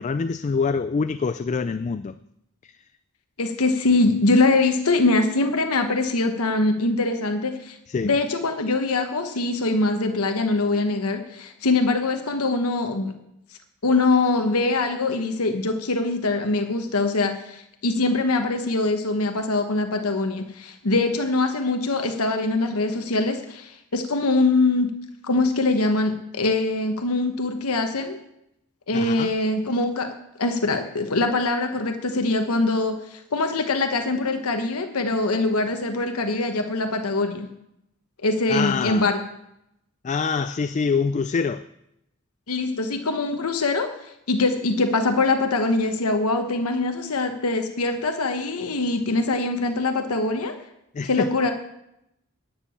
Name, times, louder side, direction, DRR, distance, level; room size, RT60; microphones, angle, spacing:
voice 1, 0.0-2.2 2.6-2.7 7.9-8.2 28.9-29.3 38.5-39.1 40.0-41.7 50.9-51.3, left 5 dB, 35° left, 0.3 m, -25 dB
voice 2, 3.4-7.8 8.0-13.1 13.8-24.9 25.3-28.2 28.9-37.5 38.2-39.2 42.5-43.9 44.3-50.6 51.0-51.5, left 3 dB, 80° left, 1.1 m, -23 dB
10.0 x 6.8 x 8.5 m
head